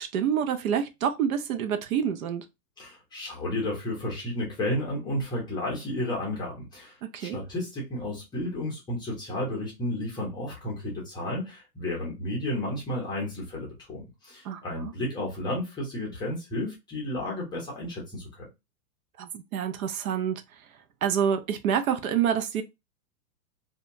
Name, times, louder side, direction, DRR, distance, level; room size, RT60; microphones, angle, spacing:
voice 1, 0.0-2.4 7.1-7.4 14.4-14.9 19.2-20.4 21.0-22.6, right 8 dB, 60° right, 0.6 m, -27 dB
voice 2, 2.8-18.5, left 1 dB, 10° left, 0.6 m, -32 dB
2.7 x 2.2 x 2.6 m
hypercardioid pair, 145°, 48 cm